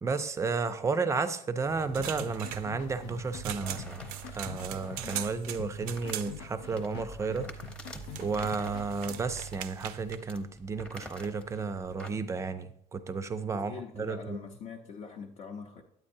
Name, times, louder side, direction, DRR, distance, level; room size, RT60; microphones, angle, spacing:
voice 1, 0.0-4.0 4.3-7.5 8.2-14.4, right 4 dB, 20° right, 0.4 m, -32 dB
sound 1, 1.7-10.2, right 9 dB, 70° right, 0.5 m, -41 dB
sound 2, 2.0-9.2, left 11 dB, 90° left, 0.4 m, -46 dB
sound 3, 3.6-12.1, left 1 dB, 5° left, 0.8 m, -49 dB
voice 2, 13.5-15.8, left 6 dB, 50° left, 0.7 m, -43 dB
9.3 x 8.6 x 2.7 m
cardioid pair, 155°, 16 cm